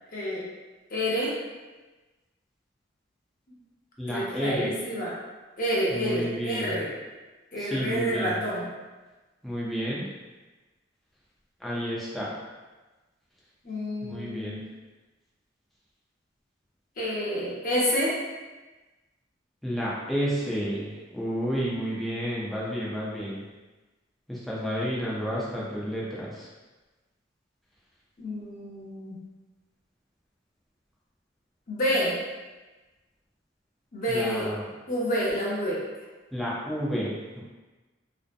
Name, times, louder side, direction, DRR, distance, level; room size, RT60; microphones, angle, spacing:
voice 1, 0.1-0.4 0.9-1.3 4.1-5.1 5.6-6.9 7.5-8.7 13.6-14.7 17.0-18.1 28.2-29.2 31.7-32.2 33.9-34.5 34.9-35.8, equal, 50° left, -6 dB, 0.7 m, -28 dB
voice 2, 4.0-4.7 5.9-6.7 7.6-8.4 9.4-10.1 11.6-12.4 14.0-14.6 19.6-23.4 24.3-26.5 34.1-34.7 36.3-37.4, equal, ahead, -7 dB, 0.4 m, -31 dB
2.6 x 2.0 x 2.4 m, 1.2 s
head